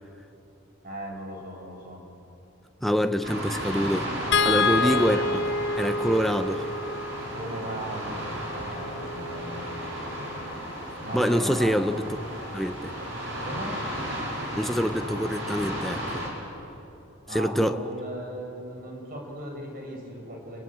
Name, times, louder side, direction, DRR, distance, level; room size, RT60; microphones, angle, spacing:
voice 1, 0.8-2.0 4.7-5.1 7.3-8.2 8.6-9.8 11.0-11.8 13.0-13.1 13.4-13.8 17.3-20.6, right 1 dB, 45° right, 0 dB, 6.3 m, -37 dB
voice 2, 2.8-4.1 4.4-5.2 5.8-6.7 11.1-12.0 12.5-12.9 14.6-16.2 17.3-17.8, equal, ahead, 8 dB, 0.8 m, -25 dB
sound 1, 3.2-16.3, equal, 65° right, 5.8 m, -34 dB
sound 2, 4.3-10.6 12.2-12.3 12.7-12.8, left 3 dB, 60° left, 0.9 m, -29 dB
27.5 x 23.0 x 8.7 m, 2.8 s
head